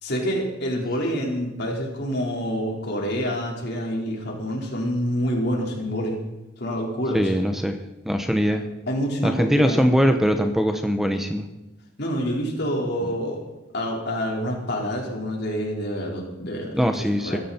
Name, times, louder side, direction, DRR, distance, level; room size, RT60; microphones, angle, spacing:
voice 1, 0.0-6.2 6.6-7.3 8.9-9.9 12.0-13.4 13.7-17.4, equal, 60° left, -1 dB, 4.4 m, -27 dB
voice 2, 7.1-7.8 8.1-8.7 9.2-11.5 16.7-17.4, equal, ahead, 6 dB, 0.9 m, -21 dB
21.5 x 14.5 x 4.4 m, 1.0 s
head